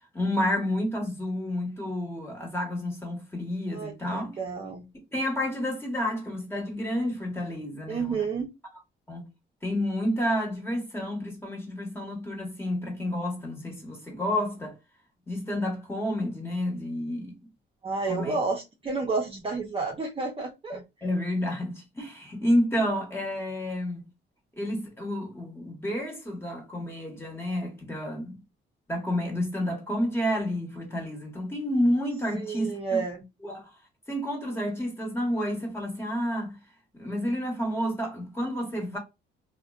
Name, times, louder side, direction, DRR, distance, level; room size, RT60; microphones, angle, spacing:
voice 1, 0.1-4.4 5.1-8.2 9.1-9.3 9.6-14.8 15.3-17.3 18.1-18.3 20.7-24.1 24.6-28.4 28.9-33.0 33.4-33.7 34.1-36.6 36.9-39.0, left 1 dB, 10° left, 1.1 m, -30 dB
voice 2, 3.7-4.8 7.9-8.5 17.8-20.8 32.4-33.2, right 4 dB, 30° right, 0.6 m, -30 dB
2.4 x 2.1 x 2.3 m
cardioid pair, 90°, 20 cm